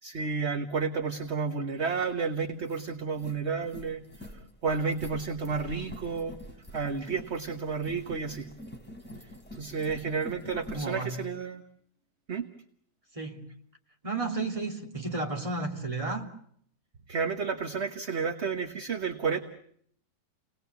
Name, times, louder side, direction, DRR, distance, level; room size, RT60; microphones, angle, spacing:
voice 1, 0.0-4.0 4.6-6.4 6.7-8.5 9.5-11.6 12.3-12.5 17.1-19.4, right 5 dB, 45° right, 6 dB, 1.5 m, -31 dB
sound 1, 2.0-2.1 2.5-10.9, equal, 5° left, 4.4 m, -46 dB
voice 2, 10.7-11.2 13.1-13.5 14.0-16.3, right 3 dB, 20° right, 1 dB, 2.9 m, -32 dB
30.0 x 19.5 x 8.2 m, 0.67 s
omnidirectional pair, 1.7 m